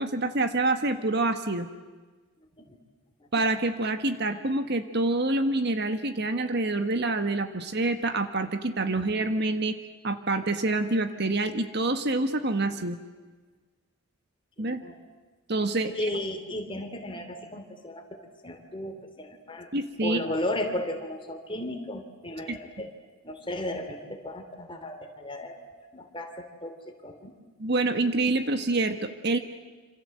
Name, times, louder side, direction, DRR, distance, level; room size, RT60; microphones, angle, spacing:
voice 1, 0.0-1.7 3.3-9.8 10.0-13.0 14.6-14.8 15.5-16.1 19.7-20.2 22.5-22.6 27.6-29.4, right 2 dB, 50° right, 9 dB, 1.5 m, -27 dB
voice 2, 15.9-18.2 18.4-19.7 20.0-22.9 23.2-27.3, left 1 dB, 25° left, 5 dB, 3.1 m, -35 dB
27.5 x 27.0 x 7.8 m, 1.3 s
head